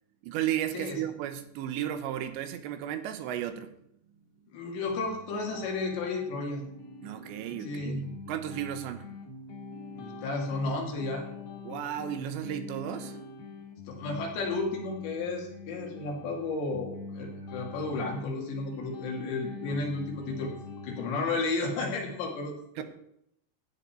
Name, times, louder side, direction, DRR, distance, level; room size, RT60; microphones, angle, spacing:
voice 1, 0.2-3.8 7.0-8.0 8.3-9.1 11.6-13.2 22.8-22.9, right 11 dB, 85° right, 9 dB, 3.2 m, -34 dB
voice 2, 4.5-6.6 7.6-8.1 9.9-11.2 13.9-20.5 20.8-22.8, left 3 dB, 80° left, 0 dB, 4.6 m, -33 dB
sound 1, 4.9-21.4, left 3 dB, 60° left, 3.6 m, -44 dB
14.0 x 9.3 x 4.4 m, 0.76 s
omnidirectional pair, 5.0 m